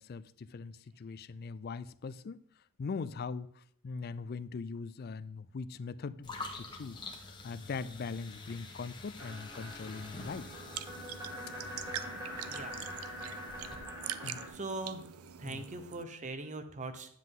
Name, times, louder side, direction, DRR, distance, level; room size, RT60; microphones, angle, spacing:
voice 1, 0.0-2.4 2.8-7.0 7.4-10.5 14.2-14.5 15.4-15.7, left 4 dB, 45° left, 0.3 m, -41 dB
sound 1, 6.2-13.8, left 2 dB, 20° left, 1.1 m, -47 dB
sound 2, 9.2-14.5, left 1 dB, 15° right, 1.9 m, -44 dB
sound 3, 10.2-16.0, right 10 dB, 80° right, 0.5 m, -44 dB
voice 2, 14.5-15.0 15.4-17.1, right 2 dB, 35° right, 0.8 m, -40 dB
9.8 x 7.6 x 3.7 m
head